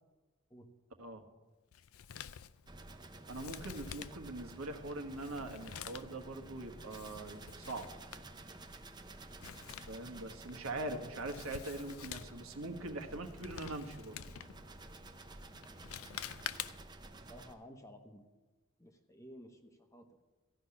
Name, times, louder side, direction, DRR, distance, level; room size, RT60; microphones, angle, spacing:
Male speech man speaking, 1.7-17.0, left 9 dB, 80° left, 0.5 m, -49 dB
sound 1, 2.7-17.5, right 2 dB, 20° right, 0.7 m, -52 dB
voice 1, 3.3-7.9 9.9-14.2, right 2 dB, 80° right, 5 dB, 1.3 m, -42 dB
voice 2, 10.7-11.1 17.3-18.2 18.8-20.1, equal, 15° left, 5 dB, 1.0 m, -54 dB
15.0 x 5.9 x 9.6 m, 1.2 s
head